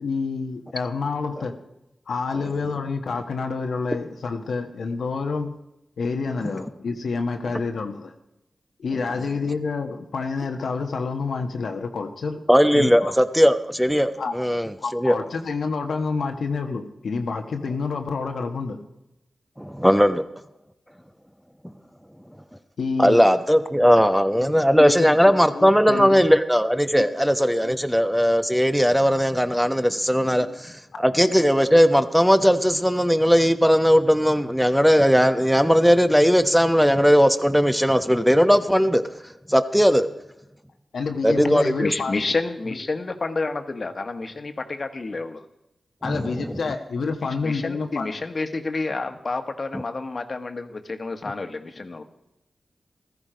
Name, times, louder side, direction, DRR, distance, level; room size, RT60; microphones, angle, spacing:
voice 1, 0.0-1.6 2.1-5.5 6.0-8.1 8.8-12.4 12.7-13.1 14.2-14.4 14.8-18.8 22.8-23.2 23.9-24.0 24.3-24.5 24.8-26.2 26.9-27.1 27.6-27.7 30.2-30.5 40.9-42.1 42.6-42.8 46.0-48.1, left 4 dB, 85° left, 1.4 m, -28 dB
voice 2, 12.5-15.2 19.6-20.2 23.0-39.0 39.5-40.1 41.2-41.9 46.0-46.5, equal, ahead, 1.0 m, -18 dB
voice 3, 41.8-45.4 47.4-52.0, left 3 dB, 50° left, 1.5 m, -29 dB
15.0 x 13.5 x 5.1 m
cardioid pair, 55°, 0 cm